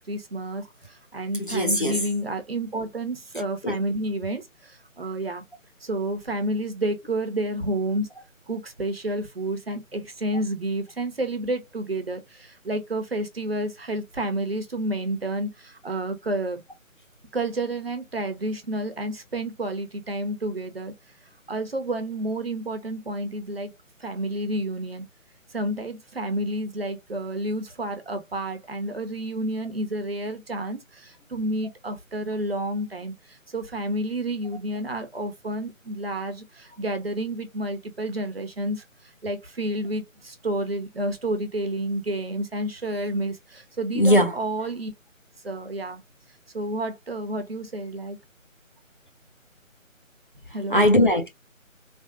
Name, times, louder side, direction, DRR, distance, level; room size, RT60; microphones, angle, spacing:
voice 1, 0.1-5.4 5.8-8.1 8.5-16.6 17.3-23.7 24.0-25.1 25.5-44.9 45.4-46.0 46.5-48.2 50.5-50.8, right 1 dB, 45° right, 0.7 m, -30 dB
voice 2, 1.4-2.0 3.6-3.7 43.9-44.3 50.7-51.3, equal, 40° left, 0.5 m, -19 dB
3.4 x 2.0 x 2.3 m
figure-of-eight pair, 165°, 41 cm